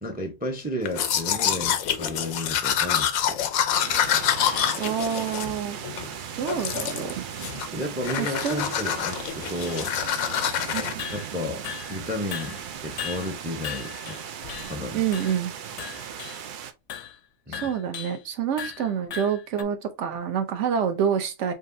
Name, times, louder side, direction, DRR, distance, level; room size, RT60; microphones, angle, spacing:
voice 1, 0.0-3.4 6.0-6.1 7.7-10.0 11.1-14.2 14.7-15.0 17.5-17.7, left 1 dB, 10° right, 0.5 m, -33 dB
Domestic sounds home sounds, 0.8-6.1 6.5-7.1 7.4-7.8 8.0-10.9, left 9 dB, 90° left, 1.1 m, -26 dB
sound 1, 3.7-16.7, right 8 dB, 85° right, 0.4 m, -37 dB
voice 2, 4.8-5.8 6.4-7.2 8.2-8.9 10.7-11.0 14.9-15.5 17.5-21.5, right 8 dB, 65° right, 1.0 m, -27 dB
sound 2, 6.1-6.2 6.7-6.8 7.3-7.4 7.7-7.8 8.4-8.6 9.0-10.1 10.3-10.6 11.0-12.1 12.3-14.8 15.1-15.5 15.8-16.5 16.9-17.2 17.5-18.2 18.6-19.6, left 9 dB, 70° left, 0.8 m, -38 dB
5.3 x 2.6 x 2.6 m
omnidirectional pair, 1.4 m